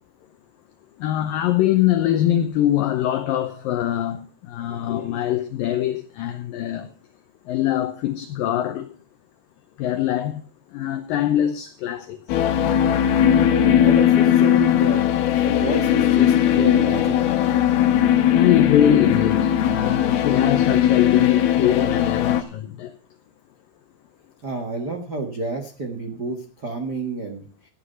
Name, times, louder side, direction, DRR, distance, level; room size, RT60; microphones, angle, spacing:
voice 1, 1.0-6.9 7.5-8.9 9.8-12.4 18.3-22.9, left 11 dB, 85° left, 2.0 m, -23 dB
sound 1, 12.3-22.4, left 10 dB, 70° left, 2.7 m, -18 dB
voice 2, 13.5-15.0 15.4-17.2 24.4-27.5, right 3 dB, 85° right, 0.9 m, -29 dB
14.0 x 9.7 x 5.6 m
omnidirectional pair, 5.1 m